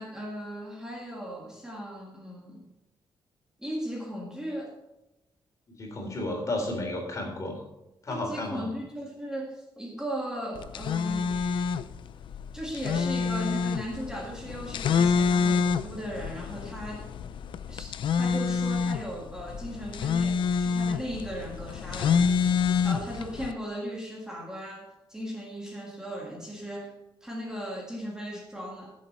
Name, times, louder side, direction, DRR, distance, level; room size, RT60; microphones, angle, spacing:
voice 1, 0.0-2.7 3.6-4.8 8.1-11.4 12.5-17.1 17.7-22.5 22.8-28.9, equal, 5° right, -1 dB, 1.8 m, -37 dB
voice 2, 5.8-7.6 8.0-8.7, left 2 dB, 35° left, 1 dB, 3.7 m, -32 dB
sound 1, 10.6-23.5, left 6 dB, 65° left, 0.6 m, -27 dB
15.5 x 7.3 x 4.3 m, 0.93 s
cardioid pair, 140°, 9 cm